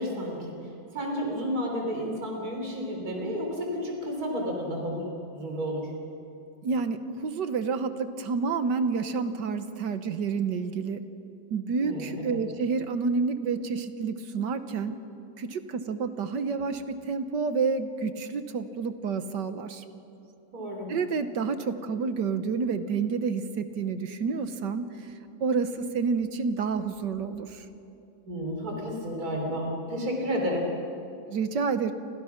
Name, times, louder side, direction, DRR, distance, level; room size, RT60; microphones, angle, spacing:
voice 1, 0.0-5.9 11.8-12.4 20.5-20.9 28.3-30.7, equal, 50° right, 1 dB, 4.3 m, -31 dB
voice 2, 6.6-11.0 11.5-15.0 15.4-19.8 20.9-25.1 25.4-27.7 31.3-31.9, right 5 dB, 65° right, 10 dB, 1.7 m, -29 dB
30.0 x 25.5 x 5.9 m, 2.7 s
omnidirectional pair, 2.1 m